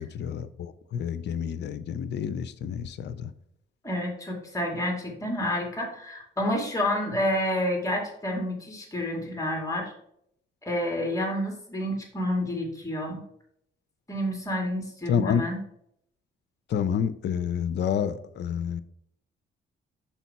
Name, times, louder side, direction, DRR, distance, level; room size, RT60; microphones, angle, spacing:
voice 1, 0.0-3.3 15.1-15.4 16.7-18.8, left 8 dB, 60° left, 14 dB, 0.5 m, -29 dB
voice 2, 3.8-9.9 10.6-13.2 14.1-15.6, left 1 dB, 15° left, 1 dB, 2.1 m, -29 dB
5.6 x 4.6 x 4.1 m, 0.72 s
cardioid pair, 90°, 20 cm